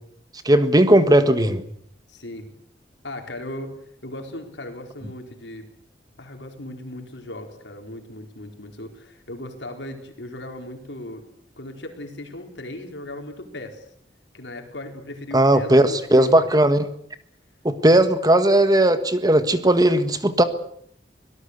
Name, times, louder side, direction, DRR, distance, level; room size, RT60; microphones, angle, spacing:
voice 1, 0.4-1.6 15.3-16.9 17.6-20.4, right 1 dB, 20° right, 10 dB, 1.5 m, -17 dB
voice 2, 2.1-2.5 3.0-3.7 4.0-5.7 6.2-11.3 11.6-13.9 14.3-16.5 17.9-18.1, left 1 dB, 85° left, 4 dB, 4.3 m, -37 dB
24.5 x 18.0 x 8.1 m, 0.68 s
head